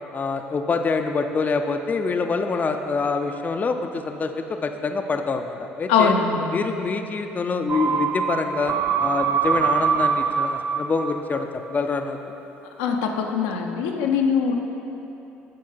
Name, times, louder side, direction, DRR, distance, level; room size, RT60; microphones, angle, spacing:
voice 1, 0.1-6.1 6.5-12.2, left 4 dB, 35° left, 6 dB, 0.5 m, -26 dB
voice 2, 5.9-6.6 7.9-8.0 12.8-14.6, left 6 dB, 85° left, 2 dB, 0.6 m, -22 dB
sound 1, 7.7-11.4 11.7-11.8, right 7 dB, 45° right, 0.4 m, -24 dB
7.6 x 4.4 x 5.6 m, 2.9 s
hypercardioid pair, 65°, 5 cm